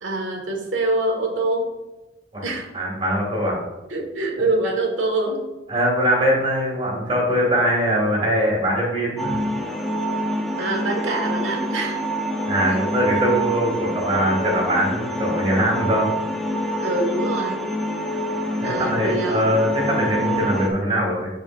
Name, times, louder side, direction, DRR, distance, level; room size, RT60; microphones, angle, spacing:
voice 1, 0.0-1.6 2.4-2.7 3.9-5.4 10.6-12.0 12.7-12.8 16.8-17.7 18.6-19.5, right 2 dB, 85° right, 1 dB, 1.8 m, -25 dB
voice 2, 2.7-3.6 5.7-9.4 12.5-16.1 18.6-21.3, equal, 25° right, -3 dB, 2.5 m, -21 dB
sound 1, 9.2-20.7, right 1 dB, ahead, 0.7 m, -26 dB
12.5 x 4.9 x 2.6 m, 1.1 s
head